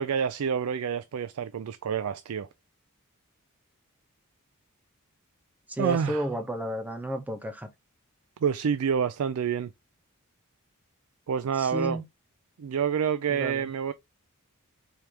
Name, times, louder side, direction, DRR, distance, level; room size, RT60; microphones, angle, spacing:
voice 1, 0.0-2.5 5.8-6.3 8.4-9.7 11.3-12.0 12.6-13.9, right 7 dB, 75° right, 0.4 m, -28 dB
voice 2, 5.7-7.7 11.6-12.0 13.3-13.6, equal, 5° right, 0.8 m, -32 dB
4.5 x 3.3 x 3.5 m
head